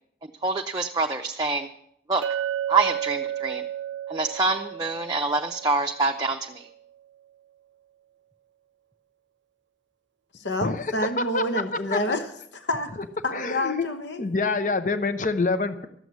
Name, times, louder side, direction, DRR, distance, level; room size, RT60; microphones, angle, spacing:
voice 1, 0.4-1.7 2.1-2.2 2.7-3.6 4.1-6.6, right 3 dB, 20° right, 2 dB, 0.6 m, -25 dB
Chink clink, 2.2-6.5, right 10 dB, 85° right, 0.5 m, -32 dB
voice 2, 10.3-12.3 12.5-12.9 13.2-14.2, left 1 dB, 85° left, 8 dB, 1.2 m, -28 dB
voice 3, 11.2-11.6 11.9-12.2 13.3-13.8 14.2-15.9, left 3 dB, 45° left, 11 dB, 0.8 m, -26 dB
13.0 x 7.7 x 9.6 m, 0.72 s
head